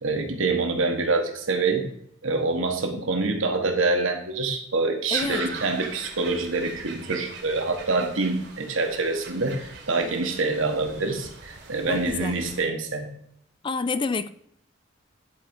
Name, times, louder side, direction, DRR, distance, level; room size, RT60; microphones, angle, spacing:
voice 1, 0.0-1.9 2.2-13.1, right 3 dB, 75° right, 1.5 m, -26 dB
voice 2, 5.1-5.5 11.9-12.4 13.6-14.3, left 4 dB, 25° left, 0.3 m, -28 dB
sound 1, 5.1-12.6, right 4 dB, 55° right, 1.6 m, -41 dB
10.5 x 4.3 x 5.3 m
head